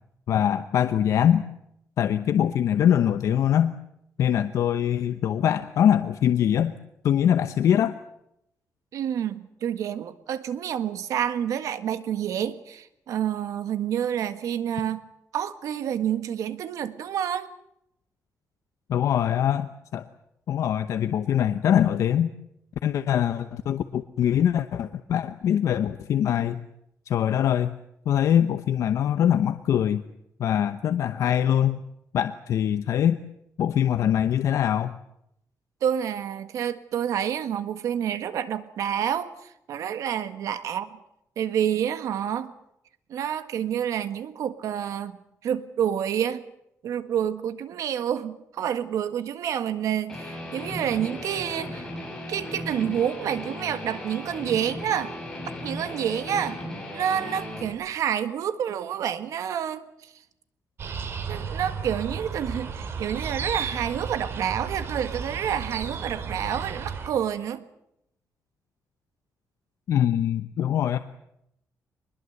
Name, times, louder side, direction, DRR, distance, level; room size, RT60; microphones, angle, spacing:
voice 1, 0.3-1.4 2.0-3.7 4.2-6.7 7.0-8.0 18.9-20.0 20.5-22.3 22.8-26.6 27.1-27.8 28.1-30.0 30.4-31.8 32.1-33.2 33.6-35.0 69.9-71.0, left 10 dB, 70° left, 10 dB, 0.9 m, -23 dB
voice 2, 8.9-15.0 15.3-17.5 35.8-41.0 41.4-42.5 43.1-46.4 46.8-51.9 52.3-55.1 55.6-56.6 56.9-60.1 61.3-67.6, right 9 dB, 80° right, 11 dB, 1.6 m, -28 dB
Guitar, 50.1-57.7, left 1 dB, 10° left, 6.7 m, -36 dB
sound 1, 60.8-67.1, right 5 dB, 50° right, 3.0 m, -33 dB
24.0 x 21.0 x 8.0 m, 0.79 s
wide cardioid pair, 175°, 6 cm